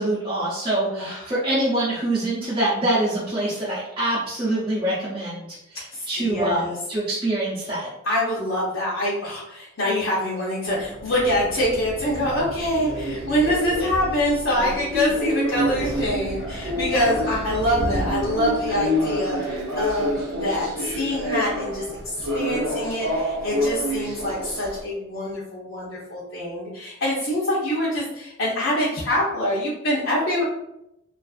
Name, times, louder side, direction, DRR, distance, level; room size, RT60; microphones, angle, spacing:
voice 1, 0.0-7.9, right 1 dB, 25° right, -10 dB, 0.6 m, -25 dB
voice 2, 1.0-1.3 5.9-6.8 8.0-30.4, left 1 dB, 75° left, -8 dB, 0.7 m, -25 dB
sound 1, 10.7-24.8, equal, 85° right, 0.7 m, -28 dB
2.5 x 2.4 x 2.4 m, 0.84 s
head